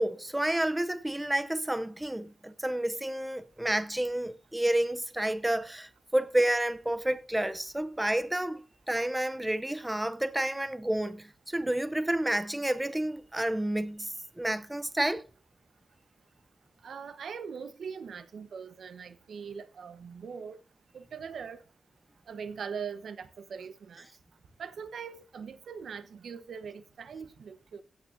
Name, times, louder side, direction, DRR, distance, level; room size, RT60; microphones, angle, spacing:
voice 1, 0.0-15.2, right 1 dB, 10° right, 0.6 m, -30 dB
voice 2, 16.8-20.6 20.9-21.6 22.3-24.1 24.6-27.8, right 6 dB, 85° right, 1.0 m, -41 dB
16.0 x 8.9 x 2.6 m
wide cardioid pair, 175°, 0 cm